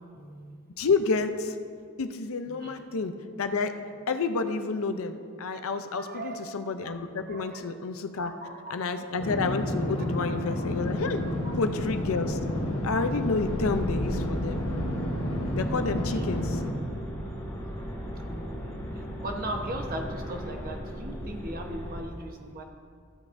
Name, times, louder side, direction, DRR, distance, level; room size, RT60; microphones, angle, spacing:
voice 1, 0.1-0.6 2.5-2.8 6.0-6.5 7.3-7.6 8.2-8.9 10.0-10.1 10.6-10.7 11.3-11.6 16.1-16.2 18.2-22.6, right 1 dB, 45° right, 2 dB, 1.0 m, -39 dB
voice 2, 0.8-1.5 2.0-3.7 4.1-8.3 8.7-11.2 11.5-12.4 12.8-14.6 15.5-16.6, left 4 dB, 75° left, 8 dB, 0.6 m, -29 dB
sound 1, 9.2-16.7, left 1 dB, 90° left, 1.3 m, -31 dB
sound 2, 10.5-22.0, equal, 15° left, 2.7 m, -37 dB
14.5 x 8.3 x 2.6 m, 2.2 s
head